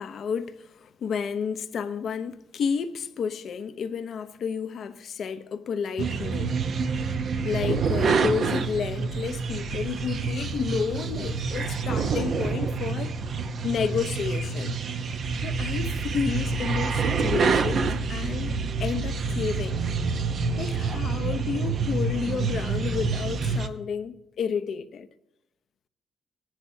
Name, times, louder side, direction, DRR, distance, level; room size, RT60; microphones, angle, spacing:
voice 1, 0.0-6.6 7.4-13.2 13.6-14.7 15.4-19.8 20.6-25.1, left 6 dB, 60° left, 0.7 m, -31 dB
sound 1, 6.0-23.7, right 4 dB, 60° right, 0.8 m, -27 dB
18.5 x 10.5 x 2.8 m
cardioid pair, 90°, 0 cm